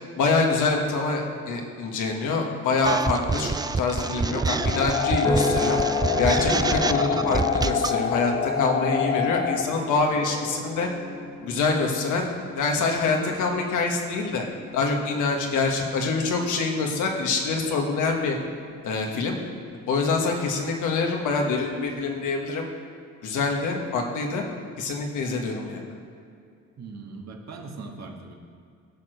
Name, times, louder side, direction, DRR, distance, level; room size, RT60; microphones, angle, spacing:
voice 1, 0.2-5.8 6.2-10.9 11.4-14.5 14.7-18.4 18.8-19.4 19.9-22.7 23.2-24.4 24.8-25.8, left 4 dB, 85° left, 2 dB, 1.5 m, -25 dB
sound 1, 2.8-8.0, right 4 dB, 15° right, 0.3 m, -26 dB
sound 2, 4.6-9.6, left 7 dB, 35° left, 0.7 m, -26 dB
sound 3, 5.2-19.7 20.2-20.7, left 2 dB, 10° left, 0.9 m, -35 dB
voice 2, 26.8-28.3, right 3 dB, 60° right, 2 dB, 1.5 m, -40 dB
13.5 x 4.6 x 6.4 m, 2.4 s
cardioid pair, 90°, 30 cm